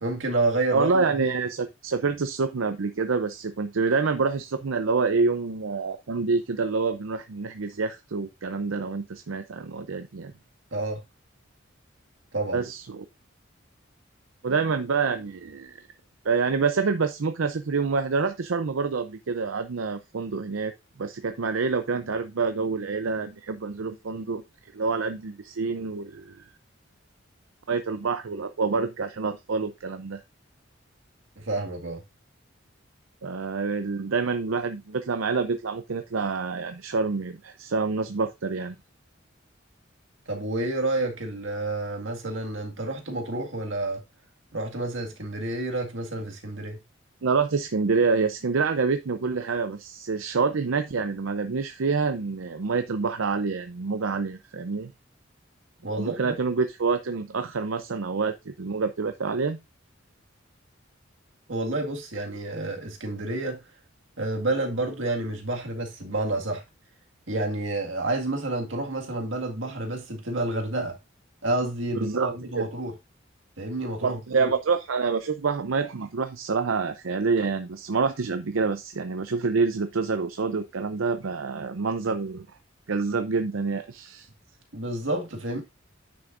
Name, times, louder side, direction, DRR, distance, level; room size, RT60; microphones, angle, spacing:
voice 1, 0.0-1.2 10.7-11.0 12.3-12.6 31.4-32.0 40.3-44.0 44.5-46.8 55.8-56.3 61.5-63.6 64.2-66.6 67.3-71.0 71.4-72.9 73.6-74.5 84.7-85.6, right 2 dB, 75° right, 1.9 m, -29 dB
voice 2, 0.7-10.3 12.5-13.1 14.4-15.8 16.2-20.7 21.0-24.4 24.7-26.4 27.7-30.2 33.2-38.8 47.2-54.9 55.9-59.6 72.0-72.6 74.0-82.5 82.9-84.3, right 4 dB, 90° right, 0.6 m, -27 dB
9.4 x 6.4 x 2.5 m
head